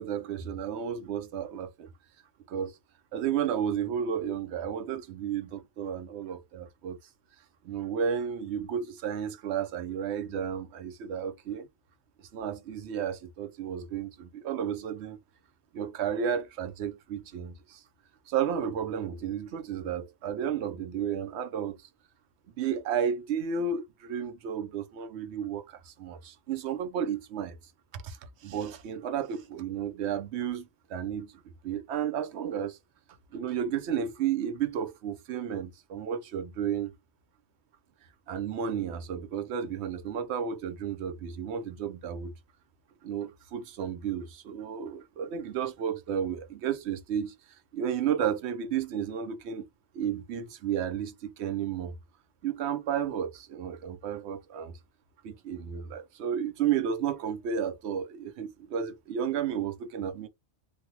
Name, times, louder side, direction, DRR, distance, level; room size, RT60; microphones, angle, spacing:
voice 1, 0.0-1.9 2.5-2.8 3.1-7.0 7.6-11.7 12.2-15.2 15.7-17.8 18.3-21.8 22.6-27.6 27.9-31.3 31.6-32.8 33.3-36.9 38.3-42.3 43.0-49.7 49.9-52.0 52.4-54.8 55.2-60.3, right 8 dB, 65° right, 0.8 m, -32 dB
3.3 x 2.2 x 2.8 m
omnidirectional pair, 1.3 m